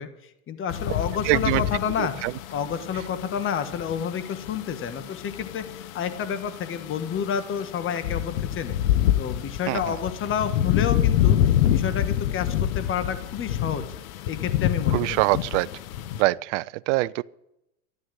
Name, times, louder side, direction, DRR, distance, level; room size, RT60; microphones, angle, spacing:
voice 1, 0.0-8.8 9.2-11.4 11.7-13.8 14.3-15.3, left 7 dB, 30° left, 1.5 m, -30 dB
sound 1, 0.7-16.2, left 11 dB, 70° left, 1.2 m, -27 dB
voice 2, 1.2-1.6 2.0-2.3 9.7-10.0 14.9-15.7 16.2-17.2, right 21 dB, 55° right, 0.5 m, -24 dB
13.0 x 11.5 x 7.9 m
supercardioid pair, 120°, 43 cm